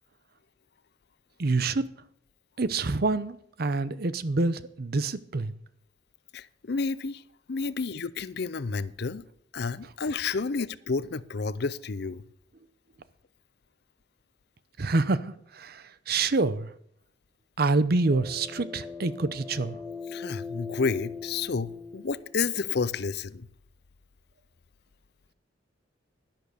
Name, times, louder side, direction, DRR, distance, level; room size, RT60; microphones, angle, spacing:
voice 1, 1.4-1.8 2.6-5.6 14.8-16.7 17.6-19.8, right 3 dB, 55° right, 0.7 m, -27 dB
voice 2, 6.3-7.2 7.5-9.3 9.5-12.2 20.1-23.5, left 4 dB, 60° left, 0.6 m, -30 dB
sound 1, 18.0-22.5, left 4 dB, 5° right, 4.7 m, -40 dB
11.0 x 10.5 x 6.7 m
head